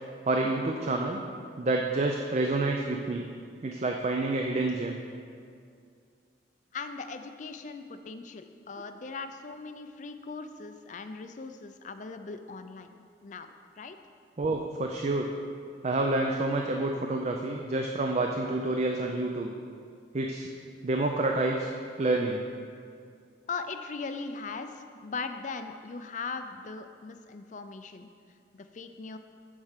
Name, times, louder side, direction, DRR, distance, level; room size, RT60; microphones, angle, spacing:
voice 1, 0.3-1.2 1.6-3.3 3.6-5.0 14.4-15.3 15.8-19.5 20.1-20.5 20.8-21.7 22.0-22.4, right 2 dB, 40° right, 2 dB, 0.4 m, -28 dB
voice 2, 6.7-12.9 13.2-13.5 13.8-14.0 23.5-28.1 28.5-29.2, left 4 dB, 45° left, 8 dB, 0.4 m, -39 dB
7.3 x 4.7 x 6.6 m, 2.3 s
head